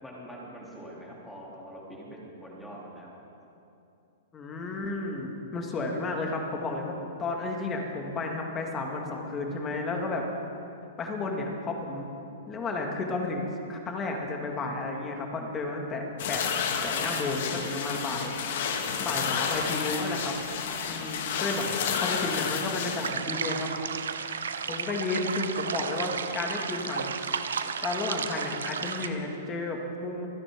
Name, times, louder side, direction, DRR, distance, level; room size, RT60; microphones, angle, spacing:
voice 1, 0.0-3.2, equal, 5° left, -4 dB, 3.1 m, -44 dB
voice 2, 4.3-6.9 7.2-10.2 11.0-12.1 12.5-16.4 16.8-18.3 19.0-20.3 20.9-21.7 21.9-23.7 24.7-27.1 27.8-30.3, left 3 dB, 20° left, 1 dB, 2.1 m, -32 dB
sound 1, 16.2-23.1, left 6 dB, 65° left, 1.5 m, -30 dB
sound 2, 23.0-29.1, right 6 dB, 85° right, 0.8 m, -33 dB
26.5 x 10.0 x 3.8 m, 2.8 s
hypercardioid pair, 130°, 0 cm